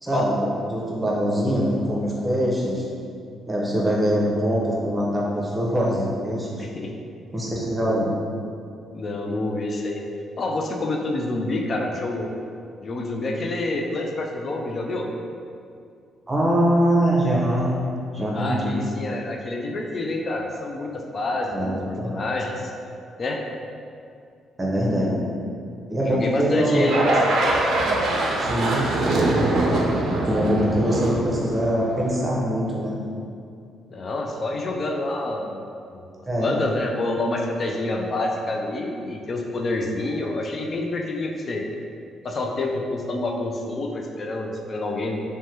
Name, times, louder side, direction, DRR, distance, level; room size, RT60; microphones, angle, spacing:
voice 1, 0.0-2.8 3.5-6.6 7.3-8.1 16.3-17.7 18.1-18.8 21.5-22.2 24.6-25.2 25.9-26.9 28.4-28.8 30.2-33.0 36.3-36.5, equal, 20° right, -4 dB, 0.7 m, -23 dB
voice 2, 6.6-6.9 8.9-10.0 10.4-12.3 12.8-15.1 18.3-21.8 22.0-22.7 23.2-23.4 26.0-27.2 33.9-36.0 36.4-41.6 42.2-45.2, left 2 dB, 45° left, 1 dB, 0.3 m, -27 dB
sound 1, 26.8-32.2, right 2 dB, 70° right, 0.4 m, -23 dB
3.2 x 2.1 x 2.8 m, 2.4 s
cardioid pair, 90°, 0 cm